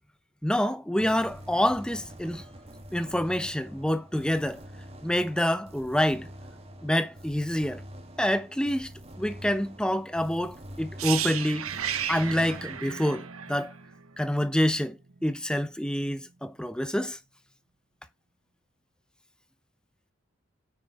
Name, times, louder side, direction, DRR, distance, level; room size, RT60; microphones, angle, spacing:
voice 1, 0.4-2.4 2.9-4.6 5.0-6.3 6.8-7.8 8.2-8.9 9.2-11.7 12.1-13.7 14.2-17.2, equal, 5° left, 0.6 m, -27 dB
sound 1, 1.0-12.8, equal, 30° right, 2.2 m, -46 dB
sound 2, 11.0-14.8 15.1-15.3, right 9 dB, 85° right, 1.1 m, -34 dB
9.4 x 6.1 x 4.2 m
head